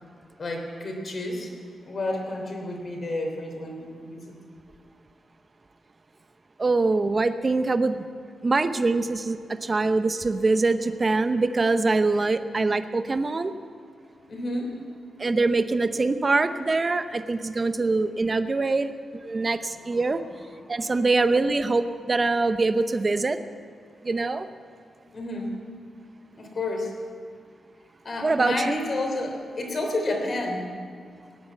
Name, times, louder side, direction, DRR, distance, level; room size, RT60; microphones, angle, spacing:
voice 1, 0.4-1.5 1.8-4.3 12.4-12.6 14.3-14.7 19.8-20.0 20.7-20.8 25.1-25.6 26.3-26.9 28.0-30.6, left 2 dB, 50° left, 2 dB, 3.2 m, -30 dB
voice 2, 6.6-8.0 8.4-13.5 15.2-18.9 19.2-20.2 20.7-23.4 24.0-24.5 28.2-28.8, right 3 dB, 35° right, 10 dB, 0.7 m, -24 dB
18.5 x 8.7 x 8.4 m, 2.2 s
cardioid pair, 95°, 0 cm